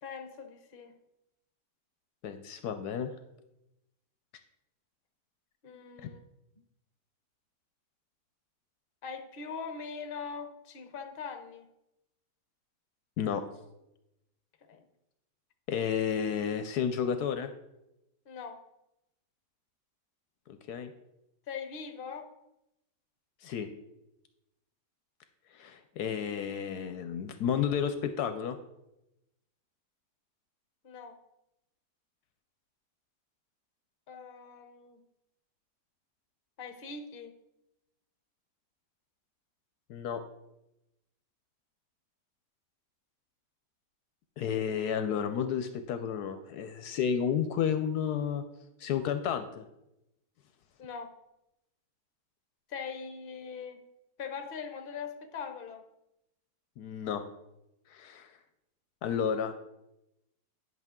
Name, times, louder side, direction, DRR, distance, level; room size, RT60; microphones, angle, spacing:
voice 1, 0.0-0.9 5.6-6.2 9.0-11.7 14.7-14.8 18.3-18.6 21.5-22.3 30.8-31.2 34.1-35.0 36.6-37.3 50.8-51.1 52.7-53.8 54.2-55.8, left 6 dB, 40° left, 6 dB, 0.9 m, -41 dB
voice 2, 2.2-3.1 13.2-13.4 15.7-17.5 20.5-20.9 23.4-23.7 25.5-28.6 39.9-40.2 44.4-48.4 48.8-49.7 56.8-57.2 57.9-58.3 59.0-59.5, left 8 dB, 75° left, 8 dB, 1.1 m, -31 dB
10.5 x 5.8 x 3.7 m, 0.88 s
omnidirectional pair, 1.8 m